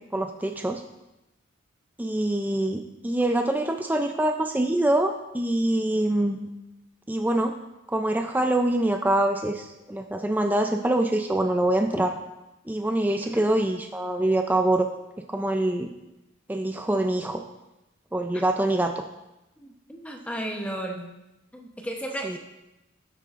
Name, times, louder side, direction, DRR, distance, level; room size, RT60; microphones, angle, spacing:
voice 1, 0.1-0.8 2.0-6.5 7.1-7.5 7.9-12.2 12.7-14.9 15.3-15.9 16.5-17.4 18.1-19.0 22.2-22.4, right 1 dB, 10° right, 4 dB, 0.4 m, -25 dB
voice 2, 19.6-21.1 21.5-22.4, right 1 dB, 5° left, 1 dB, 0.9 m, -34 dB
12.0 x 8.1 x 2.5 m, 0.96 s
head